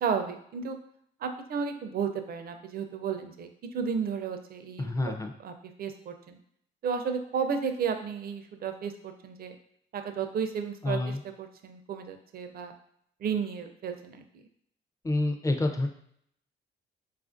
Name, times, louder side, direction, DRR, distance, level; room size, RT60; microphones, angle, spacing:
voice 1, 0.0-0.8 1.2-3.5 3.7-4.9 5.4-5.5 5.8-6.4 6.8-9.5 9.9-12.7 13.2-14.4, right 6 dB, 50° right, 7 dB, 0.5 m, -33 dB
voice 2, 4.8-5.3 10.8-11.2 15.0-15.9, left 2 dB, 15° left, 5 dB, 0.4 m, -28 dB
3.8 x 2.4 x 2.5 m, 0.69 s
cardioid pair, 90°, 20 cm